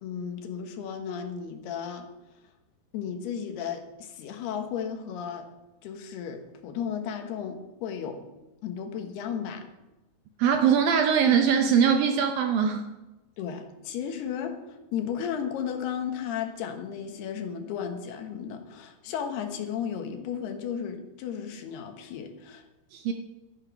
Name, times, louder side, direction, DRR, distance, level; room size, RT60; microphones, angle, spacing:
voice 1, 0.0-2.1 2.9-5.5 5.8-8.3 8.6-9.7 13.4-22.6, left 8 dB, 75° left, 5 dB, 3.2 m, -34 dB
voice 2, 10.4-12.9 22.9-23.1, right 7 dB, 75° right, 5 dB, 2.2 m, -22 dB
12.5 x 10.5 x 5.9 m, 1.0 s
omnidirectional pair, 4.8 m